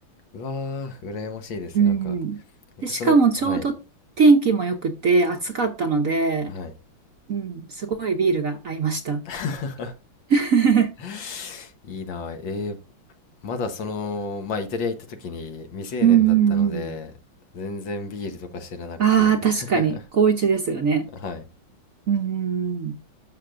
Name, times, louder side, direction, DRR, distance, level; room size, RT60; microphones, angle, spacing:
voice 1, 0.3-2.1 2.9-3.2 3.4-3.7 6.5-6.7 9.3-9.9 11.0-12.8 13.4-17.1 17.5-20.0 21.1-21.4, left 4 dB, 70° left, 1.9 m, -32 dB
voice 2, 1.7-2.4 2.8-3.7 4.2-6.5 7.3-9.2 10.3-10.9 16.0-16.9 19.0-21.1 22.1-23.0, right 6 dB, 55° right, 1.0 m, -20 dB
11.5 x 6.8 x 2.5 m
omnidirectional pair, 2.2 m